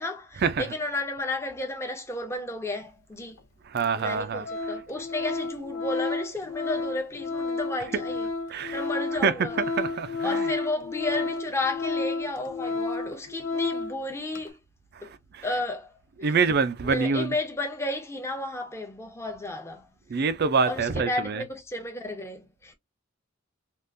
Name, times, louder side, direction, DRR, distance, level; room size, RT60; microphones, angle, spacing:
voice 1, 0.0-3.4 4.0-8.3 8.7-9.6 10.2-14.6 15.0-15.1 15.4-15.9 16.2-16.3 16.8-19.9 20.6-22.7, left 2 dB, 15° left, 0.7 m, -32 dB
Organ, 3.4-3.5 4.0-4.2 4.4-14.0 14.3-14.5, left 3 dB, 85° left, 0.7 m, -31 dB
voice 2, 3.7-4.4 8.5-8.8 9.2-10.5 14.9-15.4 16.2-17.3 20.1-21.4, right 5 dB, 50° right, 0.5 m, -26 dB
3.6 x 2.4 x 2.6 m
head